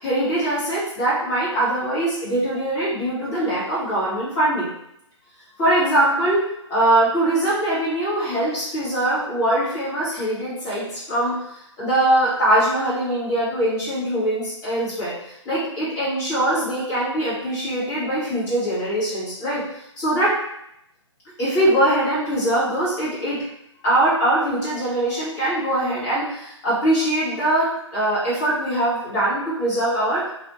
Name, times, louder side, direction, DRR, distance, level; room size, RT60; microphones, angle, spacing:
voice 1, 0.0-4.7 5.6-6.4 6.7-11.3 11.8-19.6 20.0-20.3 21.4-23.4 23.8-30.2, right 1 dB, 15° left, -10 dB, 1.2 m, -22 dB
2.5 x 2.4 x 2.7 m, 0.79 s
figure-of-eight pair, 135°, 16 cm